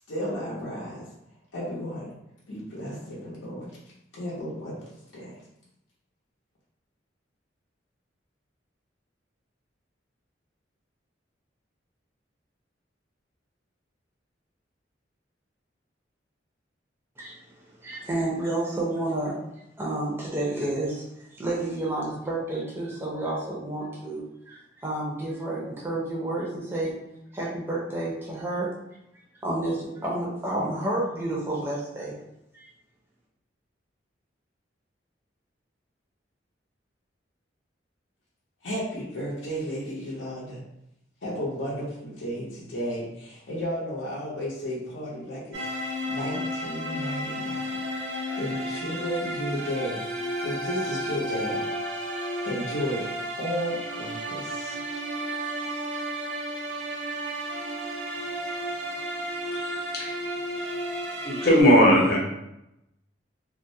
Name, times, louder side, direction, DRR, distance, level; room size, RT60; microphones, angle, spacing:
voice 1, 0.1-1.0 1.5-2.1 2.5-3.7 4.1-4.8 5.1-5.3 38.6-40.6 41.2-50.0 50.4-51.6 52.4-53.1 53.4-54.8, equal, 90° left, -6 dB, 0.6 m, -33 dB
voice 2, 17.8-19.3 19.8-21.0 21.3-27.0 27.3-28.7 29.4-32.1 32.5-32.7, right 1 dB, 10° right, -5 dB, 0.4 m, -30 dB
sound 1, 45.5-61.6, equal, 65° right, 0.5 m, -32 dB
voice 3, 59.6-60.1 61.2-62.2, equal, 55° left, -4 dB, 0.7 m, -19 dB
2.3 x 2.0 x 2.6 m, 0.85 s
head